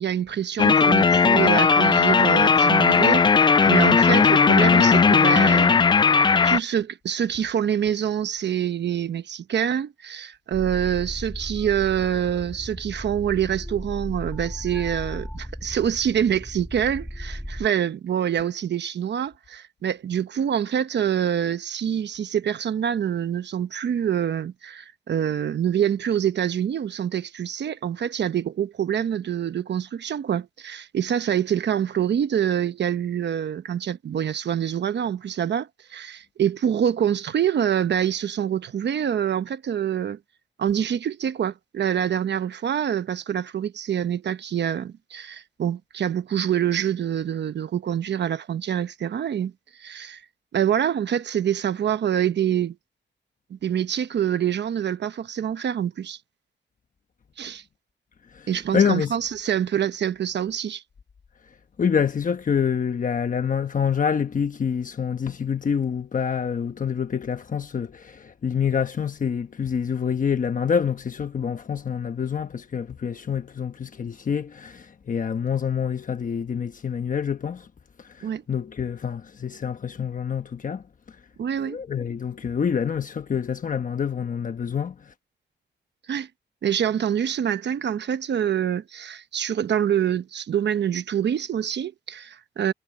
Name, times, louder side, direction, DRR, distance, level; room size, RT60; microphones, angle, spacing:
voice 1, 0.0-5.8 6.4-40.2 40.6-50.2 50.5-52.7 53.5-56.2 57.4-57.6 58.5-60.8 78.2-78.4 81.4-81.8 86.1-86.3 86.6-92.7, right 9 dB, 70° right, 1.0 m, -26 dB
sound 1, 0.6-6.6, left 5 dB, 25° left, 0.3 m, -17 dB
sound 2, 10.5-17.7, equal, ahead, 1.6 m, -36 dB
voice 2, 58.3-59.1 61.8-77.7 78.0-81.2 81.7-85.1, left 7 dB, 45° left, 1.1 m, -27 dB
wide cardioid pair, 120°, 19 cm